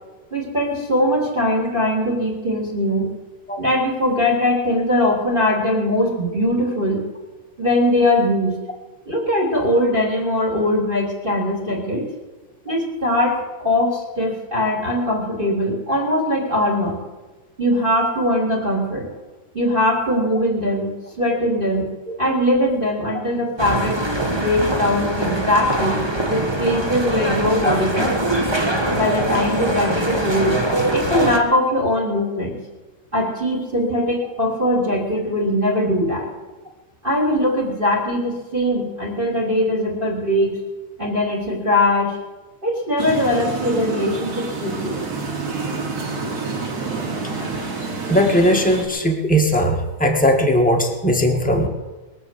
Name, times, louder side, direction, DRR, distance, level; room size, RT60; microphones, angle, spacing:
voice 1, 0.3-3.1 3.6-7.0 7.6-8.6 9.0-12.0 12.6-17.0 17.6-19.1 19.5-20.9 21.2-21.9 22.2-24.0 24.3-25.9 26.3-28.2 28.9-30.5 30.9-32.6 33.1-36.3 37.0-40.6 41.0-42.2 42.6-45.0, left 1 dB, 15° right, 0 dB, 3.3 m, -21 dB
sound 1, 23.6-31.4, right 1 dB, 30° right, 0.4 m, -22 dB
sound 2, 43.0-48.9, right 4 dB, 60° right, 4.0 m, -28 dB
voice 2, 48.1-51.7, equal, 5° left, 1 dB, 1.2 m, -18 dB
22.0 x 7.5 x 7.8 m, 1.2 s
omnidirectional pair, 3.5 m